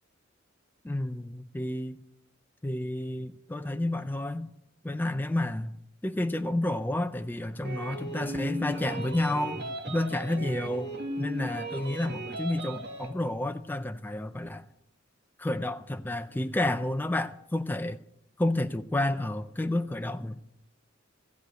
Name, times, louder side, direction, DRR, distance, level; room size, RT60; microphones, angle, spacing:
voice 1, 0.8-2.0 2.6-4.5 4.8-5.8 6.0-10.9 11.2-14.6 15.4-18.0 18.4-20.5, left 1 dB, 10° left, 0.4 m, -30 dB
sound 1, 7.6-13.1, right 1 dB, 55° right, 1.5 m, -37 dB
14.5 x 5.1 x 9.3 m
head